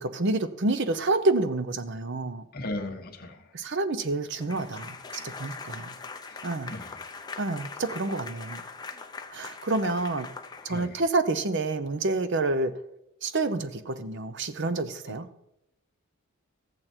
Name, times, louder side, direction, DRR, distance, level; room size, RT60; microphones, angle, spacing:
voice 1, 0.0-2.4 3.5-5.9 6.4-6.7 7.4-8.6 9.3-10.3 10.6-12.7 13.2-15.3, right 2 dB, 50° right, 12 dB, 0.7 m, -28 dB
voice 2, 2.5-3.5 6.3-7.0 10.7-11.0 15.0-15.1, left 1 dB, 40° left, 3 dB, 1.3 m, -37 dB
sound 1, 4.4-11.1, left 4 dB, 20° left, 0.7 m, -41 dB
14.0 x 8.8 x 4.4 m, 0.83 s
head